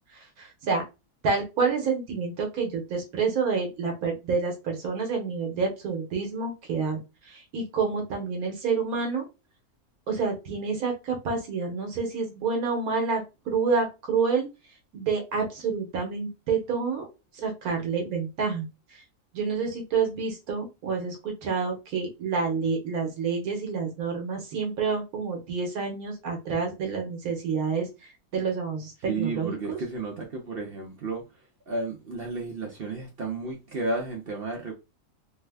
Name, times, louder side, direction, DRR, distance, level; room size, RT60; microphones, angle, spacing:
voice 1, 0.4-0.8 1.2-7.0 7.3-9.3 10.1-14.5 14.9-17.1 17.4-18.7 18.9-19.0 19.3-27.9 28.3-29.8, right 5 dB, 80° right, 1.3 m, -28 dB
voice 2, 29.1-31.2 31.7-34.7, right 3 dB, 55° right, 0.7 m, -32 dB
3.2 x 2.0 x 3.3 m
omnidirectional pair, 1.5 m